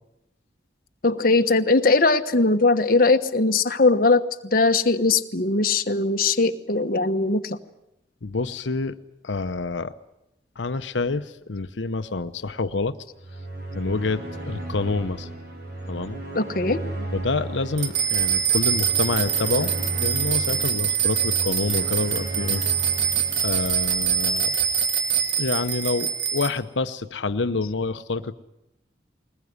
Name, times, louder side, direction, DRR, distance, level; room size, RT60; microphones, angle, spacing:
voice 1, 1.0-4.2 4.5-7.6 16.3-16.8, left 3 dB, 50° left, 7 dB, 1.2 m, -20 dB
voice 2, 8.2-8.9 9.2-9.9 10.6-13.0 13.7-15.3 15.9-16.2 17.1-19.7 20.0-22.6 23.4-24.6 25.4-28.3, left 3 dB, 90° left, 10 dB, 0.8 m, -27 dB
sound 1, 13.2-24.5, right 2 dB, 55° right, 5.7 m, -35 dB
sound 2, 17.8-26.5, right 8 dB, 75° right, 2.9 m, -24 dB
21.5 x 20.0 x 9.6 m, 0.86 s
head